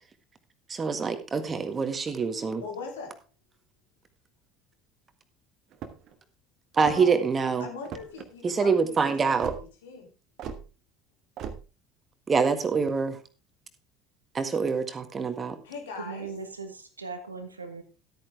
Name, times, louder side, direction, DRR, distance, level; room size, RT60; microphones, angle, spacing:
voice 1, 0.7-2.6 6.7-7.7 8.4-9.5 12.3-13.2 14.3-15.6, right 5 dB, 25° right, 10 dB, 1.7 m, -25 dB
voice 2, 2.6-3.2 6.8-9.3 9.8-10.1 15.6-16.3, left 4 dB, 70° left, 2 dB, 3.2 m, -40 dB
sound 1, 5.7-6.2 6.7-7.2 7.8-8.3 9.4-9.6 10.4-10.6 11.4-11.6, right 7 dB, 45° right, 1.4 m, -38 dB
voice 3, 16.0-17.8, right 4 dB, 80° right, 9 dB, 1.4 m, -39 dB
13.0 x 9.1 x 3.5 m, 0.32 s
figure-of-eight pair, 65°, 0 cm